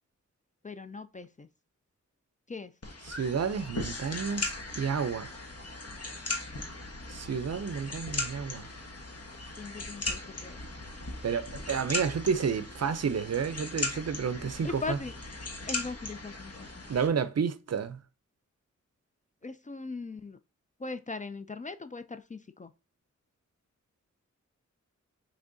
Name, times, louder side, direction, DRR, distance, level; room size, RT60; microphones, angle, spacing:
voice 1, 0.6-1.5 2.5-2.7 9.6-10.6 14.6-15.1 15.7-16.7 19.4-20.4 20.8-22.7, left 4 dB, 25° left, 0.4 m, -39 dB
sound 1, 2.8-17.1, left 2 dB, 55° left, 1.2 m, -38 dB
voice 2, 3.0-5.3 7.1-8.7 11.2-15.0 16.9-18.0, right 6 dB, 55° right, 0.5 m, -31 dB
5.9 x 3.3 x 2.6 m
cardioid pair, 45°, 30 cm